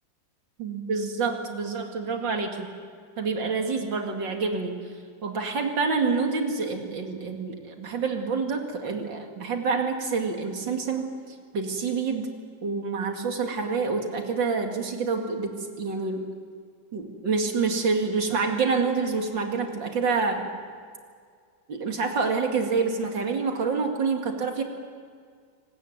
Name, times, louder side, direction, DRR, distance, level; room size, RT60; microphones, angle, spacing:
voice 1, 0.6-2.7 3.2-4.7 5.2-11.1 11.5-12.3 12.6-16.2 16.9-20.4 21.7-24.6, right 4 dB, 75° right, 3 dB, 2.9 m, -27 dB
24.5 x 19.5 x 8.0 m, 2.1 s
omnidirectional pair, 2.0 m